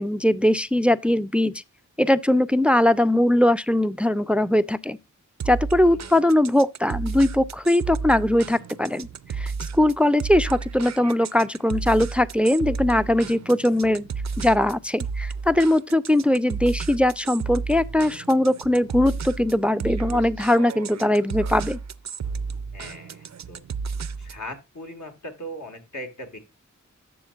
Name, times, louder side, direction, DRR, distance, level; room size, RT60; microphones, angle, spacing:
voice 1, 0.0-1.5 2.0-5.0 5.5-9.1 9.4-14.1 14.4-21.8, left 1 dB, 5° right, 0.4 m, -21 dB
sound 1, 5.4-24.5, right 5 dB, 65° right, 0.5 m, -32 dB
voice 2, 5.9-6.2 22.7-23.6 24.2-26.4, equal, 65° left, 1.9 m, -39 dB
11.5 x 6.9 x 2.4 m
wide cardioid pair, 50°, 31 cm